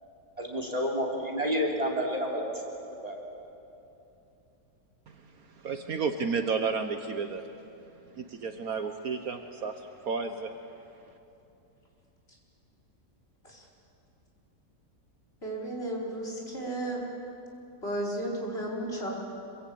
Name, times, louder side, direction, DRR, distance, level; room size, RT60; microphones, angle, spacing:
voice 1, 0.4-2.4 3.0-3.2, equal, 20° right, 0 dB, 3.4 m, -29 dB
voice 2, 5.6-7.4 8.1-9.7 10.0-10.5, right 5 dB, 60° right, 7 dB, 1.5 m, -31 dB
voice 3, 15.4-17.0 17.8-19.1, right 1 dB, 35° left, -2 dB, 4.9 m, -33 dB
26.5 x 23.5 x 8.6 m, 2.8 s
omnidirectional pair, 1.8 m